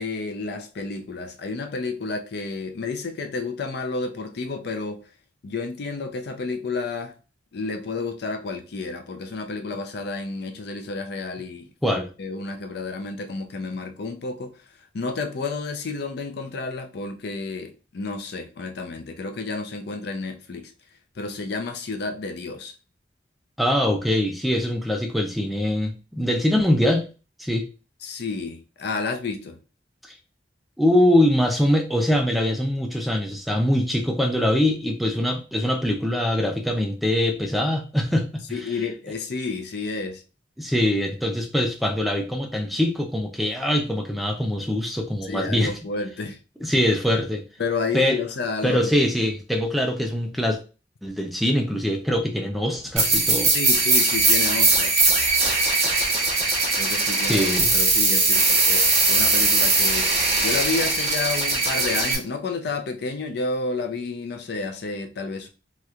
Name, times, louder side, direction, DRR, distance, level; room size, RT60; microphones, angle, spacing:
voice 1, 0.0-5.0 5.4-7.1 7.5-14.5 14.9-20.7 21.2-22.7 28.0-29.6 38.5-40.2 45.3-46.4 47.6-48.9 53.5-54.9 56.8-57.5 57.7-60.1 60.4-65.5, left 3 dB, 60° left, 0.5 m, -30 dB
voice 2, 23.6-27.1 27.4-27.7 30.8-38.7 40.6-45.7 46.6-47.4 47.9-48.2 48.6-50.6 51.0-53.5 57.2-57.7, left 1 dB, ahead, 0.4 m, -23 dB
sound 1, 53.0-62.2, right 3 dB, 35° right, 1.0 m, -20 dB
3.1 x 2.9 x 2.4 m
head